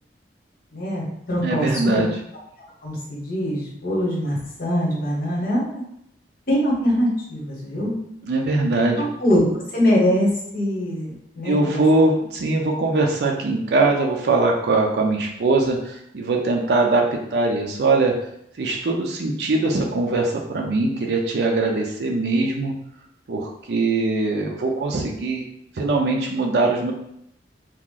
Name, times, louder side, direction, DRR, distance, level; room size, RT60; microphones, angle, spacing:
voice 1, 0.7-1.7 2.8-5.8 6.5-7.9 9.0-9.4 9.7-11.1 11.3-11.8, equal, 55° left, -4 dB, 1.2 m, -23 dB
voice 2, 1.4-2.1 8.2-9.0 11.4-17.0 17.3-18.1 18.6-22.7 23.3-25.4 25.8-26.9, right 2 dB, 65° right, 0 dB, 0.5 m, -21 dB
3.0 x 2.4 x 3.8 m, 0.75 s
head